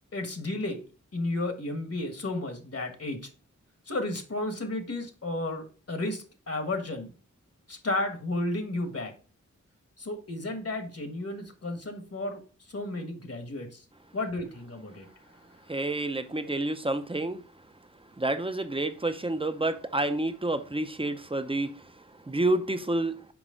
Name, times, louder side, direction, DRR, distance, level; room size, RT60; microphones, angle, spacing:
voice 1, 0.1-0.8 1.1-3.3 3.9-7.1 7.7-9.1 10.0-12.4 12.7-13.8 14.1-15.1, left 2 dB, 55° left, 6 dB, 1.4 m, -33 dB
voice 2, 15.7-17.4 18.2-21.8 22.3-23.1, right 2 dB, 20° right, 9 dB, 0.7 m, -29 dB
6.1 x 4.9 x 3.8 m, 0.37 s
wide cardioid pair, 65°, 30 cm